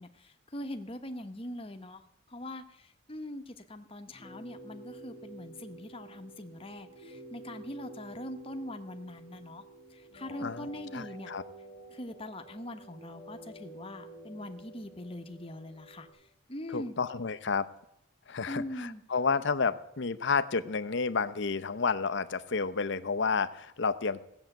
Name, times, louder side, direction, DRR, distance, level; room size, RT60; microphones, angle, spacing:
voice 1, 0.0-2.0 2.3-9.6 9.9-11.3 11.9-16.9 18.5-19.0, left 1 dB, 25° left, 7 dB, 1.0 m, -42 dB
sound 1, 4.1-16.1, right 2 dB, 50° right, 4.0 m, -50 dB
voice 2, 10.4-11.4 16.7-17.7 18.3-24.2, left 5 dB, 55° left, 11 dB, 0.7 m, -31 dB
16.0 x 7.1 x 9.0 m, 0.84 s
head